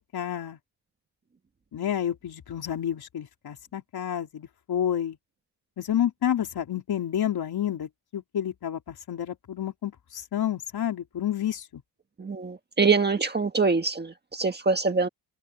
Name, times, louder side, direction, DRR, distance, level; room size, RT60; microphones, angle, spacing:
voice 1, 0.1-0.6 1.7-5.2 5.8-11.8, left 10 dB, 55° left, 3.9 m, -30 dB
voice 2, 12.2-15.1, right 4 dB, 20° right, 1.5 m, -24 dB
wide cardioid pair, 170°, 46 cm